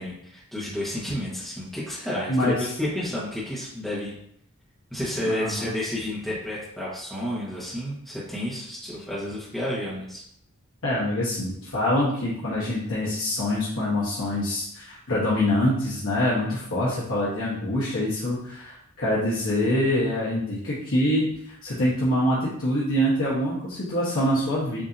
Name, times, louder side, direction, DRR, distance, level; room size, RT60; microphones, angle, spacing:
voice 1, 0.0-4.2 4.9-10.2, left 1 dB, ahead, -8 dB, 1.0 m, -31 dB
voice 2, 2.3-2.7 5.2-5.7 10.8-24.8, left 1 dB, 65° left, -7 dB, 1.1 m, -25 dB
7.2 x 2.7 x 2.6 m, 0.72 s
head